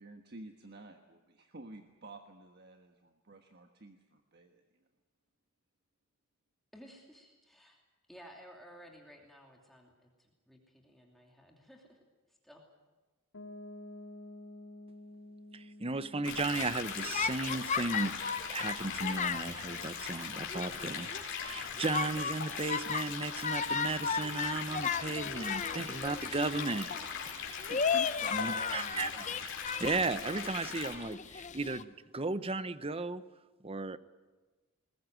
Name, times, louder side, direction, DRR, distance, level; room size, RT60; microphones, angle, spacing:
voice 1, 0.0-4.6 27.5-29.2, right 2 dB, 50° right, 5 dB, 1.4 m, -51 dB
voice 2, 6.7-7.8 8.1-12.0 12.3-12.6, equal, ahead, 0 dB, 2.7 m, -55 dB
Piano, 13.3-19.0, left 1 dB, 75° left, 3.1 m, -51 dB
voice 3, 15.5-18.1 18.5-21.1 21.4-26.9 28.3-29.4 29.8-33.2 33.6-34.0, right 3 dB, 25° right, 13 dB, 0.8 m, -35 dB
sound 1, 16.2-30.9, left 6 dB, 55° left, 4.4 m, -40 dB
sound 2, 16.5-31.8, left 6 dB, 35° left, 0.8 m, -36 dB
21.0 x 20.5 x 9.2 m, 1.2 s
head